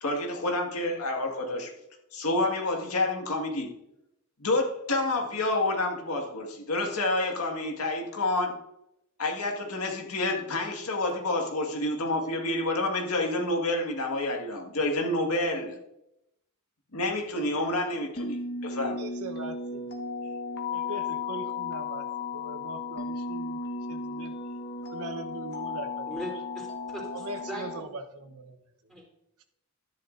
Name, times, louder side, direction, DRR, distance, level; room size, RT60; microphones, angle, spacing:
voice 1, 0.0-1.7 2.1-3.7 4.4-8.6 9.2-15.8 16.9-19.0, left 2 dB, 80° left, 1 dB, 1.9 m, -28 dB
sound 1, 18.2-27.8, left 4 dB, 50° left, 1.3 m, -35 dB
voice 2, 19.0-20.0 20.7-22.1 22.3-23.6 23.9-24.3 24.9-26.1 27.1-28.6 28.9-29.0, right 2 dB, 85° right, 6 dB, 1.1 m, -40 dB
voice 3, 26.1-27.9 28.9-29.1, right 1 dB, 5° left, -2 dB, 3.4 m, -40 dB
13.0 x 10.5 x 2.6 m, 0.84 s
head